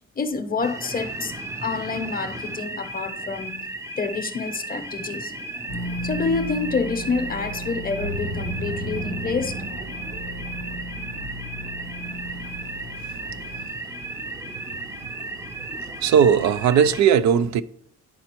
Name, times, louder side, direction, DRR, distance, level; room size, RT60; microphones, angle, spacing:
voice 1, 0.2-1.3 1.6-3.7 4.0-5.3 6.0-9.5, left 4 dB, 30° left, 0.8 m, -27 dB
sound 1, 0.6-17.0, right 2 dB, 10° right, 0.6 m, -35 dB
sound 2, 5.7-13.7, equal, 85° right, 2.1 m, -34 dB
voice 2, 16.0-17.6, right 7 dB, 70° right, 0.4 m, -18 dB
10.5 x 4.2 x 2.9 m
cardioid pair, 90°, 30 cm